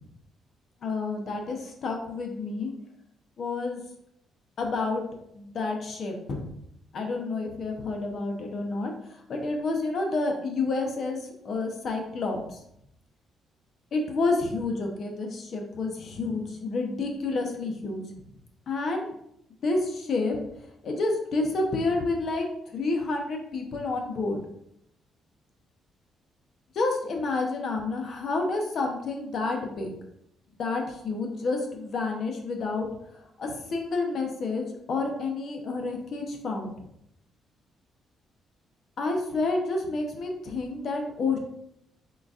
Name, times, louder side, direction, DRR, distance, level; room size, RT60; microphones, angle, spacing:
voice 1, 0.8-2.7 3.4-3.8 4.6-5.1 5.3-6.5 6.9-8.9 9.3-11.2 11.4-12.6 13.9-18.0 18.7-19.1 19.6-20.4 20.8-22.5 22.7-24.4 26.7-29.9 30.6-32.9 33.4-34.6 34.9-36.7 39.0-41.4, left 3 dB, 60° left, 2 dB, 0.8 m, -29 dB
3.9 x 3.8 x 2.4 m, 0.76 s
cardioid pair, 90°, 0 cm